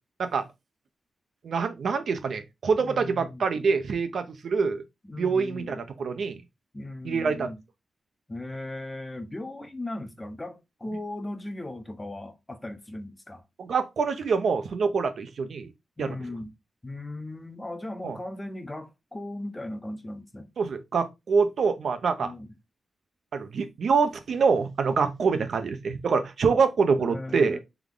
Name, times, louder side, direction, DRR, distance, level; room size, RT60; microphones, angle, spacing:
voice 1, 1.4-4.8 5.2-6.4 7.0-7.5 13.6-15.7 16.0-16.2 18.0-18.2 20.6-22.3 23.3-27.6, right 5 dB, 65° right, 0.6 m, -25 dB
voice 2, 2.8-3.4 5.0-5.8 6.7-7.6 8.3-13.4 16.0-16.5 16.8-20.5 22.2-22.5 27.0-27.6, left 1 dB, 15° left, 0.6 m, -37 dB
3.5 x 3.5 x 3.7 m
wide cardioid pair, 150°, 0 cm